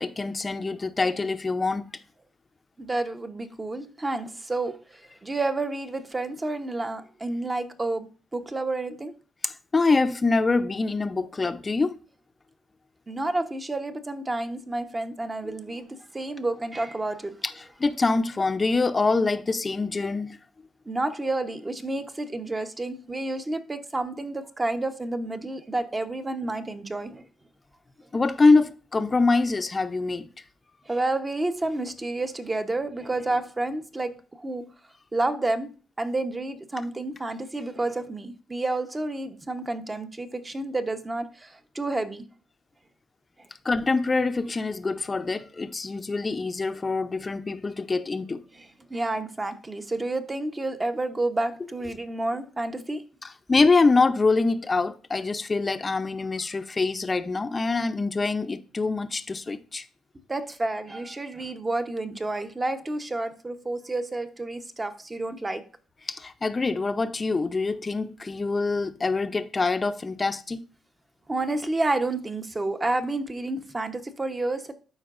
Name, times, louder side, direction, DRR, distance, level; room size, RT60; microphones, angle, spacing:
voice 1, 0.0-1.8 9.4-12.0 15.4-15.5 17.4-20.4 28.1-30.3 43.6-48.4 53.2-59.8 66.1-70.6, left 3 dB, 25° left, 0.6 m, -25 dB
voice 2, 2.8-9.1 13.1-17.4 20.9-27.3 30.9-34.7 35.1-35.7 36.0-42.3 48.6-53.0 60.3-65.6 71.3-74.7, right 2 dB, 20° right, 0.9 m, -30 dB
12.0 x 4.6 x 2.5 m
cardioid pair, 90°, 0 cm